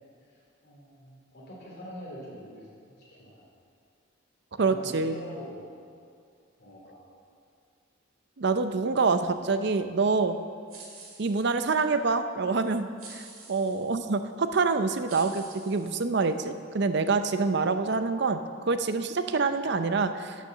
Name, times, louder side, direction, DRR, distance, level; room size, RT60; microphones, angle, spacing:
voice 1, 0.3-2.7 3.0-3.4 4.5-5.8 6.6-7.0, equal, 50° left, -5 dB, 3.4 m, -44 dB
voice 2, 4.6-5.1 8.4-10.4 11.2-18.4 18.6-20.4, right 4 dB, 55° right, 9 dB, 0.5 m, -26 dB
sound 1, 10.7-11.8 13.0-13.9 14.6-14.7 15.1-16.5, right 4 dB, 85° right, 2.3 m, -48 dB
11.5 x 6.8 x 6.6 m, 2.3 s
head